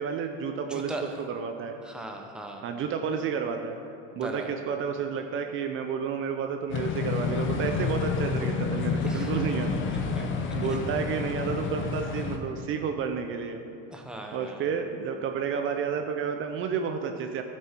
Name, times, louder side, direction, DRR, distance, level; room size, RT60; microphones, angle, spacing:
voice 1, 0.0-1.8 2.6-3.8 4.2-9.7 10.2-10.3 10.5-13.6 14.3-17.4, right 6 dB, 45° right, 5 dB, 0.6 m, -31 dB
voice 2, 0.7-1.2 1.8-2.7 4.1-4.5 9.1-9.3 10.1-10.3 10.7-10.8 13.9-14.6, right 2 dB, 5° right, 2 dB, 1.0 m, -38 dB
sound 1, 6.7-12.4, left 5 dB, 40° left, 1.1 m, -29 dB
11.5 x 7.6 x 4.5 m, 2.6 s
supercardioid pair, 125°, 30 cm